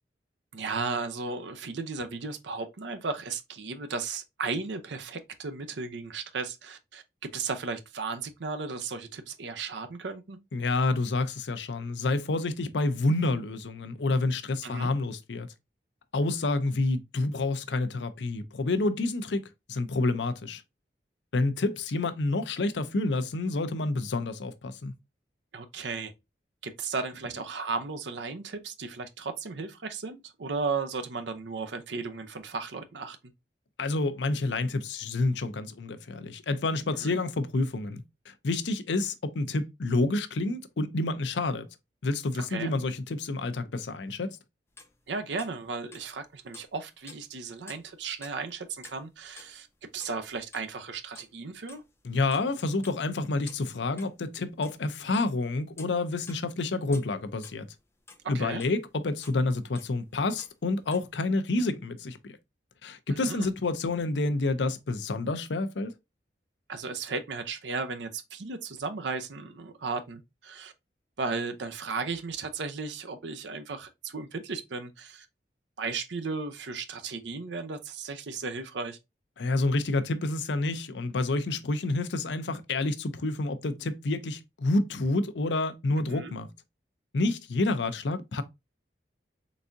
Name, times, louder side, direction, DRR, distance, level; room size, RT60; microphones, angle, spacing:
voice 1, 0.5-7.0 7.3-10.4 14.6-14.9 25.5-26.1 26.6-33.2 37.0-37.2 42.5-42.7 45.1-49.7 49.9-51.8 58.3-58.6 63.3-63.5 66.7-70.7 71.2-75.3 75.8-79.0 86.0-86.3, right 4 dB, 85° right, 0.7 m, -35 dB
voice 2, 10.5-15.5 16.1-20.6 21.3-24.9 33.8-41.7 42.0-44.4 52.0-57.7 58.3-62.3 62.8-65.9 79.4-86.5 87.1-88.4, left 2 dB, 85° left, 0.6 m, -29 dB
sound 1, 44.7-46.2 46.5-49.6 49.8-50.9 51.1-51.3 51.6-52.5 52.8-54.1 54.5-55.3 55.7-56.5 56.9-59.0 59.2-59.4 59.7-60.6 60.9-61.1, left 4 dB, 15° left, 0.7 m, -51 dB
4.0 x 3.5 x 2.6 m
head